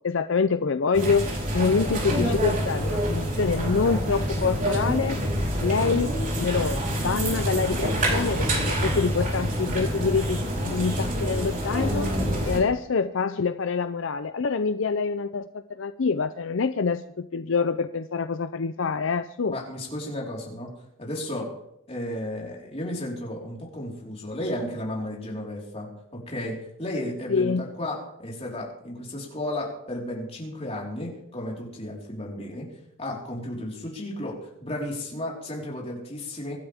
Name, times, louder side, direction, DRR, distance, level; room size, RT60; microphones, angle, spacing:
voice 1, 0.0-5.2 5.6-12.1 12.4-19.6 27.3-27.6, left 5 dB, 65° left, 11 dB, 0.5 m, -26 dB
sound 1, 0.9-12.6, equal, 40° right, 4.0 m, -26 dB
voice 2, 19.5-20.7 21.0-21.5 21.9-32.7 33.0-36.6, left 1 dB, 30° left, -3 dB, 4.4 m, -33 dB
24.5 x 12.0 x 3.6 m, 0.75 s
head